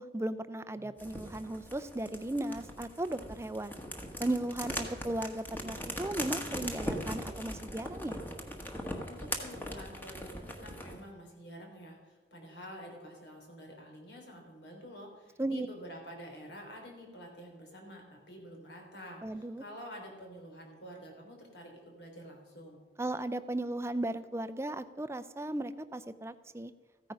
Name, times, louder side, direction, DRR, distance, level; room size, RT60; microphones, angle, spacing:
voice 1, 0.0-3.7 4.2-8.2 15.4-15.7 19.2-19.6 23.0-26.7, right 1 dB, 15° right, 13 dB, 0.5 m, -36 dB
sound 1, 1.0-11.0, equal, 10° left, 1.4 m, -40 dB
voice 2, 9.0-22.8, equal, 75° left, 1 dB, 3.6 m, -48 dB
15.0 x 9.4 x 5.4 m, 1.4 s
head